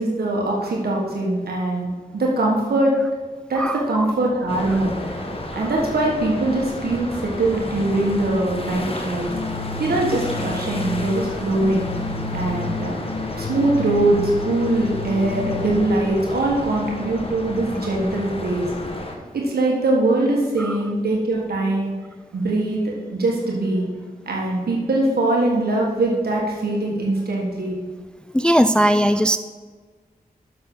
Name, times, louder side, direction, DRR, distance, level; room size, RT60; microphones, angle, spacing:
voice 1, 0.0-1.9 2.1-2.9 3.5-5.2 5.5-9.3 9.8-11.9 12.3-12.9 13.4-18.7 19.3-21.9 22.3-23.9 24.2-27.7, right 2 dB, 80° right, -2 dB, 1.5 m, -22 dB
voice 2, 3.6-4.1 7.1-7.2 20.6-20.8 28.3-29.4, equal, 5° left, 11 dB, 0.3 m, -19 dB
sound 1, 4.5-19.2, left 1 dB, 35° left, 1.3 m, -32 dB
sound 2, 9.2-15.9, left 3 dB, 85° left, 1.7 m, -31 dB
7.2 x 6.7 x 5.5 m, 1.5 s
cardioid pair, 50°, 16 cm